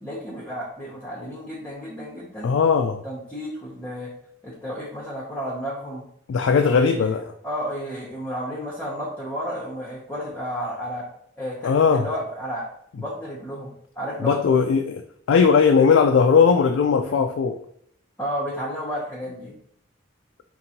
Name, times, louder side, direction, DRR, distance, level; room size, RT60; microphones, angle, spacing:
voice 1, 0.0-2.5 3.0-4.1 4.4-6.0 6.4-7.1 7.4-11.1 11.4-12.7 13.0-14.4 15.8-15.9 17.0-17.2 18.2-19.5, equal, 10° left, -6 dB, 0.7 m, -32 dB
voice 2, 2.4-3.0 6.3-7.3 11.6-12.1 14.2-15.0 15.3-17.6, left 5 dB, 80° left, 6 dB, 0.3 m, -18 dB
5.1 x 2.6 x 2.8 m, 0.67 s
head